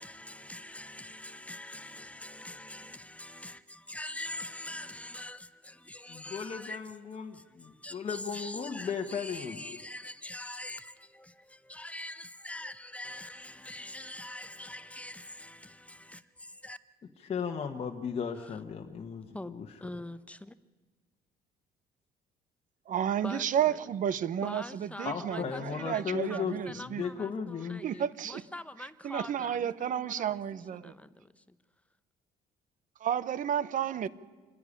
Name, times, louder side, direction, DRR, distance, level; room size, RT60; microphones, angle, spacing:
voice 1, 0.0-6.8 7.1-16.8 18.3-18.6 19.3-20.6 23.2-23.8 24.4-31.6 34.0-34.1, left 1 dB, 10° left, 0.7 m, -44 dB
voice 2, 6.1-9.8 17.2-19.6 25.0-27.8, left 6 dB, 35° left, 1.2 m, -36 dB
voice 3, 22.9-27.0 27.8-28.4 29.0-30.9 33.0-34.1, right 9 dB, 50° right, 0.8 m, -31 dB
26.5 x 10.5 x 10.0 m
cardioid pair, 110°, 17 cm